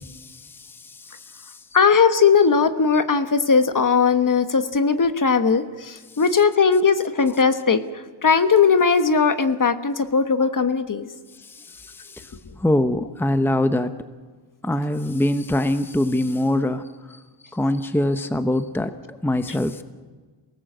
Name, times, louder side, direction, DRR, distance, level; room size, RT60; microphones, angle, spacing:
voice 1, 0.0-1.6 11.5-12.3 12.6-13.9 14.6-17.2 17.5-19.8, left 1 dB, 5° left, 9 dB, 0.9 m, -24 dB
voice 2, 1.7-7.8 8.2-11.1, left 5 dB, 45° left, 10 dB, 1.3 m, -18 dB
27.0 x 18.5 x 8.0 m, 1.4 s
wide cardioid pair, 140°, 45 cm